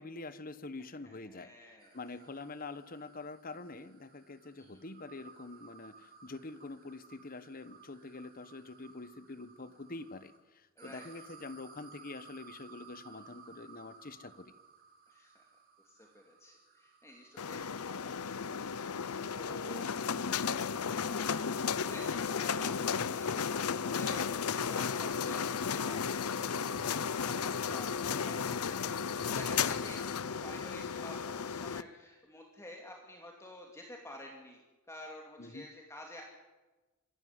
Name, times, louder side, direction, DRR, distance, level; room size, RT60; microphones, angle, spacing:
voice 1, 0.0-1.5 1.9-14.5 28.2-28.5 29.9-30.0 35.4-35.7, left 3 dB, 40° left, 13 dB, 1.2 m, -46 dB
voice 2, 1.0-2.2 4.6-4.8 10.8-11.1 15.1-15.4 15.8-19.8 20.9-34.6 34.9-36.2, left 1 dB, 15° left, 0 dB, 2.5 m, -50 dB
sound 1, 1.8-10.4 10.8-21.6, right 5 dB, 45° right, 4.2 m, -59 dB
sound 2, 17.4-31.8, left 6 dB, 90° left, 0.7 m, -34 dB
26.0 x 13.0 x 9.7 m, 1.2 s
head